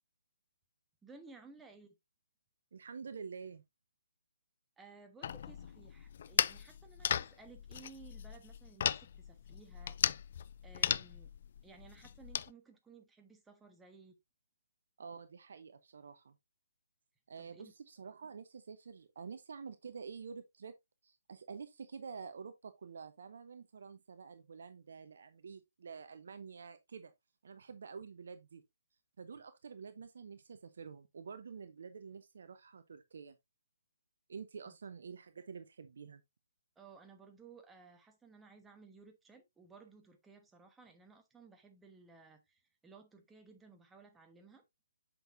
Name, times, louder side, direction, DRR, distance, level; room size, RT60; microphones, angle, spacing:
voice 1, 1.0-1.9 4.8-10.0 10.6-11.3 11.6-14.1 17.4-17.7 34.7-34.8 36.8-44.6, right 4 dB, 5° right, 1.2 m, -58 dB
voice 2, 2.7-3.6 15.0-16.3 17.3-20.8 21.0-27.1 27.4-28.6 29.2-33.4 34.3-36.2, right 5 dB, 55° right, 0.8 m, -48 dB
sound 1, 5.2-12.5, left 9 dB, 45° left, 0.3 m, -36 dB
7.9 x 6.2 x 2.6 m
figure-of-eight pair, 135°, 0 cm